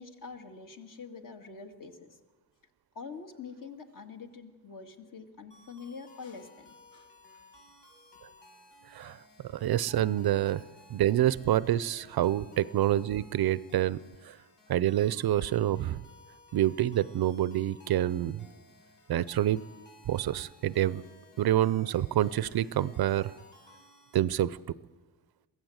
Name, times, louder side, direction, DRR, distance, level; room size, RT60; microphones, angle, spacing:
voice 1, 0.0-2.2 2.9-7.4 11.9-12.0, left 5 dB, 50° left, 4 dB, 2.2 m, -46 dB
sound 1, 5.5-24.3, left 2 dB, 80° left, 5.2 m, -57 dB
voice 2, 9.5-10.6 10.9-14.0 14.2-14.4 14.7-16.0 16.5-18.4 19.1-19.6 20.1-21.0 21.4-23.3 24.1-24.6, right 12 dB, 60° right, 18 dB, 0.6 m, -27 dB
22.5 x 15.5 x 8.0 m, 1.2 s
cardioid pair, 130°, 41 cm